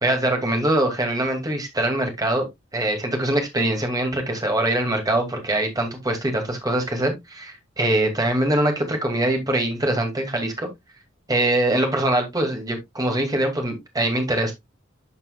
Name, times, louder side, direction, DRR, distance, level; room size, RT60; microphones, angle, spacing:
voice 1, 0.0-2.5 2.7-10.7 11.3-14.5, right 1 dB, 20° right, 2.3 m, -23 dB
11.5 x 5.5 x 2.3 m
head